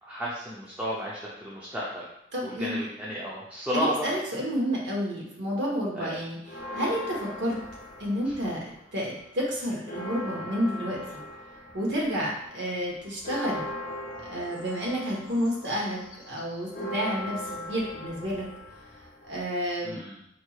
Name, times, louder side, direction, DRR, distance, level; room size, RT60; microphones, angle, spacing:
voice 1, 0.0-2.0 2.4-4.4 5.9-6.1 19.8-20.2, equal, 10° right, -6 dB, 0.5 m, -33 dB
voice 2, 2.3-2.9 3.7-6.4 6.7-7.6 8.0-8.6 8.9-11.2 11.7-13.7 14.3-16.0 16.3-18.5 19.3-20.0, equal, 80° right, -3 dB, 1.2 m, -30 dB
sound 1, 6.4-8.8 9.2-19.7, left 1 dB, 50° left, 0.8 m, -40 dB
4.4 x 3.0 x 2.4 m, 0.81 s
head